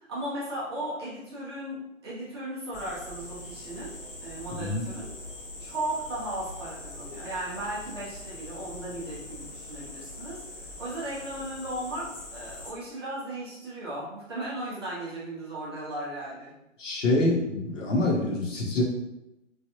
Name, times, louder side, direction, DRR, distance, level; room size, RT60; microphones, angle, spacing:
voice 1, 0.1-3.9 4.2-5.1 5.6-16.5, right 1 dB, 20° right, -8 dB, 0.6 m, -36 dB
sound 1, 2.7-12.7, left 1 dB, 45° left, 1.0 m, -42 dB
voice 2, 16.8-18.8, left 2 dB, 70° left, -1 dB, 1.0 m, -26 dB
3.2 x 2.5 x 2.8 m, 0.90 s
figure-of-eight pair, 145°, 39 cm